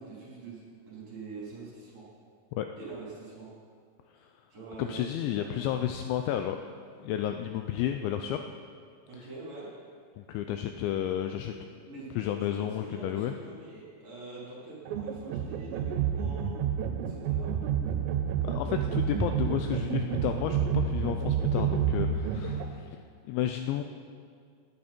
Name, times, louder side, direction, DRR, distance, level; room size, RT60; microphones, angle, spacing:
voice 1, 0.0-2.1 2.8-3.5 4.5-5.0 5.4-5.5 9.1-9.7 11.8-12.1 12.5-16.5 17.1-17.5, right 3 dB, 35° right, -7 dB, 4.0 m, -44 dB
voice 2, 4.8-6.7 7.0-8.4 9.2-9.3 10.2-11.5 12.2-13.3 18.4-23.0 23.3-23.8, left 11 dB, 90° left, 6 dB, 2.6 m, -32 dB
sound 1, 14.9-22.7, right 7 dB, 90° right, 3.4 m, -29 dB
19.5 x 10.0 x 4.4 m, 2.2 s
omnidirectional pair, 5.8 m